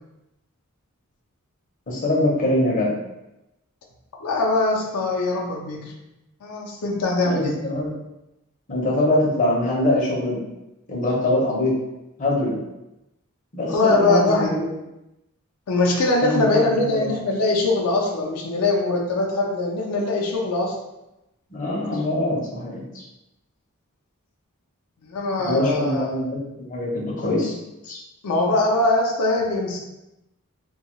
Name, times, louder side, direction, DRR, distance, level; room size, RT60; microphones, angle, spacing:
voice 1, 1.9-2.9 7.3-7.9 8.7-10.4 10.9-11.7 12.2-12.6 13.5-14.7 16.2-17.1 21.5-23.0 25.5-27.5 27.8-28.0, left 1 dB, 35° left, -4 dB, 0.6 m, -23 dB
voice 2, 4.2-5.9 6.4-7.6 13.7-14.5 15.7-20.7 25.0-26.1 28.2-29.8, left 2 dB, 85° left, -2 dB, 0.5 m, -22 dB
2.7 x 2.2 x 2.9 m, 0.93 s
head